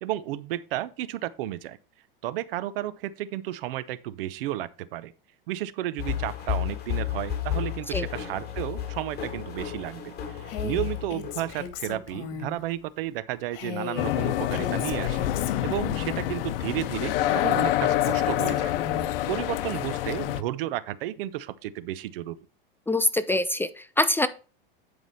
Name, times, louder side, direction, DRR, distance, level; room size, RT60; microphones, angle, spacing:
voice 1, 0.0-1.8 2.2-5.1 5.5-15.3 15.6-18.7 19.3-22.4, right 13 dB, 70° right, 0.8 m, -32 dB
sound 1, 6.0-12.0, left 10 dB, 35° left, 3.5 m, -32 dB
Female speech woman speaking, 10.4-12.6 13.5-16.4 17.2-19.1, left 6 dB, 60° left, 2.1 m, -37 dB
sound 2, 14.0-20.4, left 13 dB, 75° left, 0.8 m, -27 dB
voice 2, 22.9-24.3, left 1 dB, 10° left, 0.4 m, -24 dB
9.6 x 4.9 x 4.1 m
supercardioid pair, 115°, 29 cm